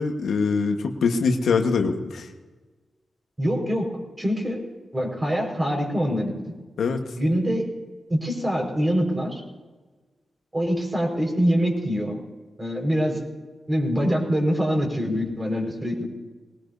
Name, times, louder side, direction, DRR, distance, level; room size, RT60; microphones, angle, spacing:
voice 1, 0.0-2.3 6.8-7.0, left 4 dB, 90° left, 4 dB, 1.4 m, -23 dB
voice 2, 3.4-4.6 4.9-6.5 7.2-7.7 8.1-9.4 10.5-12.2 12.6-13.2 13.7-16.1, equal, 25° right, 1 dB, 5.1 m, -24 dB
21.0 x 18.5 x 2.8 m, 1.3 s
cardioid pair, 75°, 0 cm